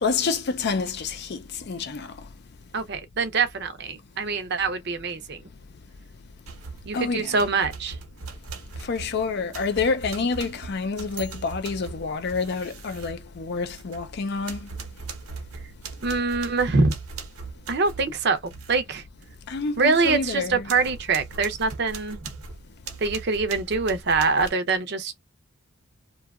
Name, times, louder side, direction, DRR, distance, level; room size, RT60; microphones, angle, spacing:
voice 1, 0.0-2.1 6.9-7.5 8.9-14.6 19.5-20.7, left 4 dB, 50° left, 0.4 m, -28 dB
voice 2, 2.7-5.4 6.9-8.0 16.0-17.0 17.7-18.4 18.7-19.0 19.8-22.2 23.0-25.2, right 4 dB, 50° right, 0.6 m, -24 dB
sound 1, 6.4-7.0 7.4-14.1 14.4-18.8 19.2-19.3 19.7-24.5, right 4 dB, 85° right, 0.9 m, -40 dB
2.7 x 2.2 x 2.3 m
head